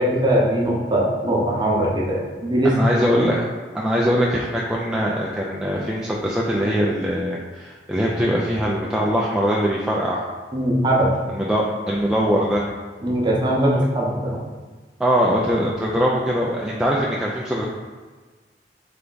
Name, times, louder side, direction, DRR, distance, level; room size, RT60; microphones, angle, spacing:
voice 1, 0.0-2.8 10.5-11.1 13.0-14.4, right 1 dB, 25° right, -3 dB, 0.8 m, -20 dB
voice 2, 2.6-3.4 3.7-10.2 11.3-12.6 15.0-17.7, equal, 5° right, -5 dB, 0.3 m, -22 dB
3.4 x 3.4 x 3.9 m, 1.4 s
head